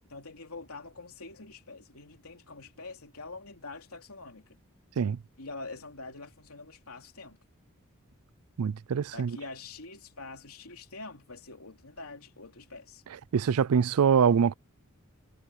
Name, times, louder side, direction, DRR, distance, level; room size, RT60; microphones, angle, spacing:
voice 1, 0.1-4.6 5.4-7.4 9.1-13.0, left 3 dB, 80° left, 3.2 m, -45 dB
voice 2, 8.6-9.4 13.3-14.5, right 7 dB, 85° right, 0.4 m, -24 dB
head